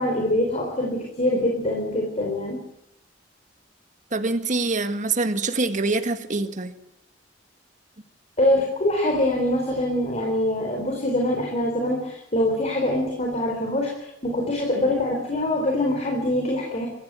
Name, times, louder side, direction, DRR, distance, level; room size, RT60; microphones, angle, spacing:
voice 1, 0.0-2.6 8.4-16.9, left 1 dB, 35° left, 1 dB, 4.3 m, -24 dB
voice 2, 4.1-6.7, right 3 dB, 40° right, 9 dB, 1.8 m, -25 dB
25.5 x 15.0 x 9.1 m, 0.77 s
head